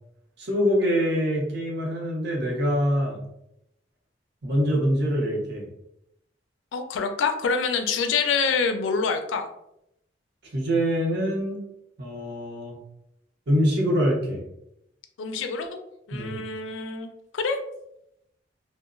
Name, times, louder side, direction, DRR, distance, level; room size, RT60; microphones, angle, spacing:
voice 1, 0.4-3.2 4.4-5.6 10.5-11.6 12.0-12.8 13.5-14.4 16.1-16.5, equal, 60° right, -1 dB, 0.7 m, -24 dB
voice 2, 6.7-9.5 15.2-15.7 16.1-17.6, left 5 dB, 75° left, 6 dB, 0.4 m, -26 dB
2.8 x 2.0 x 2.5 m, 0.82 s
head